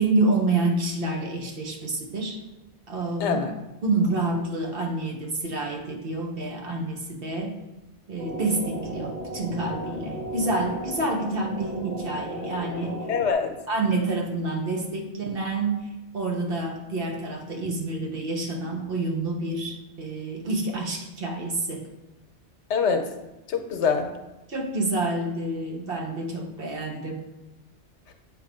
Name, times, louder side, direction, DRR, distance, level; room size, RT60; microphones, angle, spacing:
voice 1, 0.0-2.4 2.9-3.4 3.8-7.5 8.1-13.1 13.7-15.9 16.1-21.8 24.5-27.2, right 2 dB, 55° right, 1 dB, 1.2 m, -28 dB
voice 2, 3.2-3.5 13.1-13.6 22.7-23.1 23.5-24.1 28.1-28.2, left 5 dB, 80° left, 6 dB, 1.1 m, -24 dB
sound 1, 8.2-13.3, right 1 dB, 5° right, 1.0 m, -35 dB
8.0 x 3.1 x 5.2 m, 1.0 s
omnidirectional pair, 1.2 m